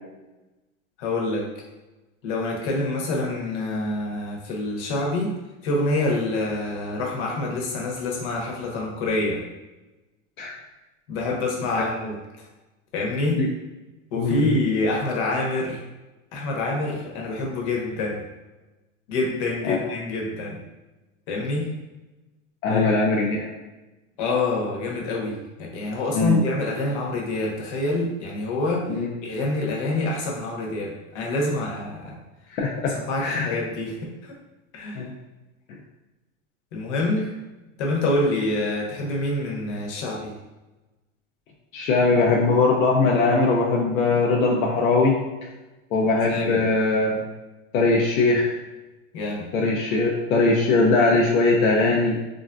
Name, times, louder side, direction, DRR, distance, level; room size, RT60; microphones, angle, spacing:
voice 1, 1.0-1.5 2.2-5.3 5.6-9.4 11.1-12.2 12.9-13.4 14.1-15.8 16.3-18.2 19.1-20.6 21.3-21.8 22.7-23.3 24.2-28.8 29.2-32.2 32.9-34.3 34.7-35.1 36.7-37.3 37.8-40.3 46.2-46.6 49.1-49.4, left 2 dB, 60° left, -1 dB, 1.0 m, -26 dB
voice 2, 14.2-14.5 19.6-19.8 22.6-23.5 26.1-26.4 28.9-29.1 32.5-33.5 34.9-35.1 41.7-45.2 45.9-47.2 47.7-48.6 49.5-52.2, left 3 dB, 85° left, -2 dB, 0.6 m, -21 dB
3.5 x 2.5 x 2.2 m, 1.1 s
supercardioid pair, 130°, 40 cm